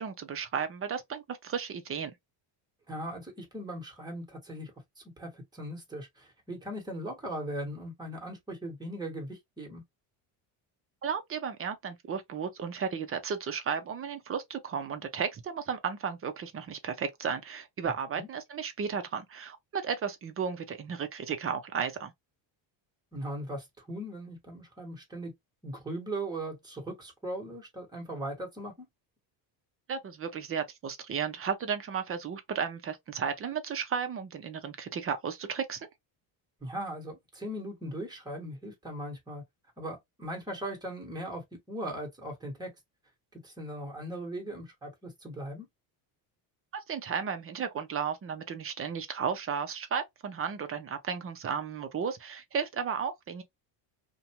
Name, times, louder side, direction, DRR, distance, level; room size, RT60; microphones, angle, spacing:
voice 1, 0.0-2.1 11.0-22.1 29.9-35.9 46.7-53.4, right 6 dB, 30° right, 0.5 m, -34 dB
voice 2, 2.9-4.7 5.0-9.8 18.2-18.3 23.1-25.3 25.6-28.9 36.6-39.4 39.8-42.7 43.3-45.7, right 1 dB, 10° right, 1.2 m, -39 dB
2.5 x 2.2 x 2.8 m
cardioid pair, 130°, 48 cm